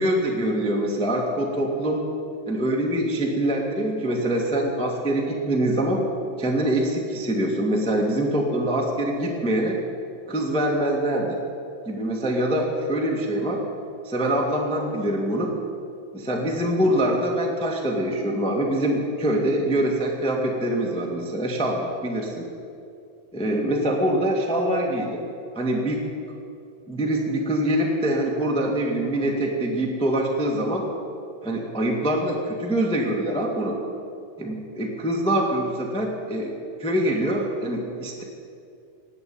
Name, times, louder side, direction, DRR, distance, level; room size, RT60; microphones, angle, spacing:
voice 1, 0.0-2.0 2.5-6.0 6.4-9.8 10.3-11.4 11.8-13.6 14.0-15.5 16.1-22.5 23.3-25.2 25.5-26.0 26.9-30.9 31.4-33.8 34.4-36.5 36.8-38.2, right 1 dB, 5° left, -1 dB, 0.7 m, -24 dB
19.0 x 8.1 x 8.8 m, 2.5 s
omnidirectional pair, 4.0 m